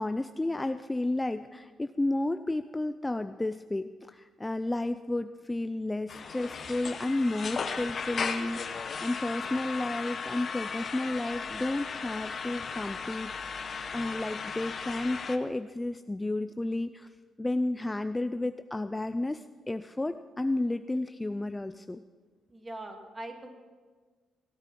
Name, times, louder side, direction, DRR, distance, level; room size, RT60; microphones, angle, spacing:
voice 1, 0.0-13.6 13.9-17.1 17.4-22.0, left 2 dB, 15° left, 10 dB, 0.4 m, -32 dB
sound 1, 6.1-15.4, left 5 dB, 45° left, 1.0 m, -36 dB
voice 2, 22.5-23.5, right 1 dB, 20° right, 4 dB, 2.1 m, -41 dB
17.0 x 8.8 x 6.1 m, 1.5 s
cardioid pair, 90°, 0 cm